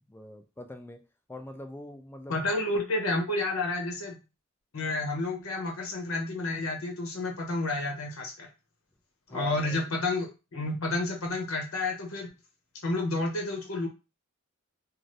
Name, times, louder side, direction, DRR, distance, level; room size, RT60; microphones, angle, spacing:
voice 1, 0.1-1.0 1.3-2.6 9.3-9.9, left 1 dB, 10° left, 6 dB, 0.4 m, -43 dB
voice 2, 2.3-4.2 4.7-8.5 9.3-12.3 12.8-13.9, left 2 dB, 75° left, 1 dB, 0.8 m, -30 dB
2.6 x 2.6 x 3.2 m, 0.29 s
head